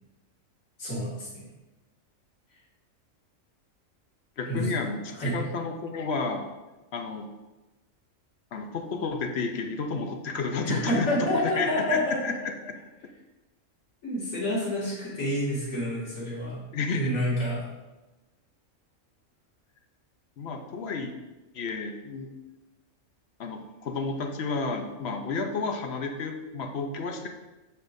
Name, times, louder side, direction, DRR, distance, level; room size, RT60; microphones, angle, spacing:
voice 1, 0.8-1.4 4.5-4.7 5.1-5.4 10.6-12.3 14.0-16.6 16.9-17.6, equal, 80° left, -7 dB, 2.5 m, -28 dB
voice 2, 4.4-5.0 5.3-6.5 6.9-7.3 8.5-12.7 16.7-17.1 20.4-21.1 21.5-22.3 23.4-27.3, left 4 dB, 60° left, 4 dB, 0.9 m, -31 dB
6.8 x 6.5 x 2.6 m, 1.1 s
omnidirectional pair, 1.4 m